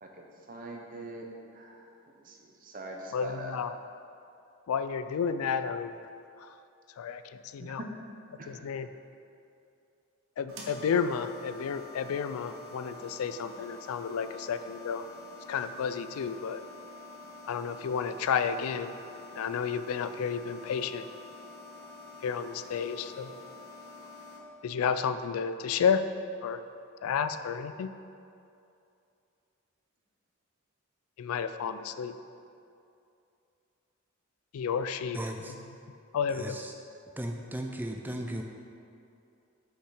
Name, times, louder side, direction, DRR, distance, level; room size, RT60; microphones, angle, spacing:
voice 1, 0.0-3.6 7.6-7.9 8.4-8.6, right 1 dB, 40° right, 0 dB, 0.8 m, -43 dB
voice 2, 3.1-3.7 4.7-5.9 7.0-7.8 8.5-8.9 10.4-15.1 15.5-16.6 17.5-19.0 19.4-21.0 22.2-23.3 24.6-26.0 26.4-26.6 27.0-27.9 31.2-32.1 34.5-35.2 36.1-36.6, left 6 dB, 85° left, 12 dB, 0.3 m, -31 dB
sound 1, 10.5-24.4, left 2 dB, 75° right, 1.1 m, -47 dB
voice 3, 35.1-35.5 36.3-36.7 37.2-38.4, right 1 dB, 10° right, 3 dB, 0.4 m, -36 dB
6.6 x 5.7 x 4.8 m, 2.6 s
head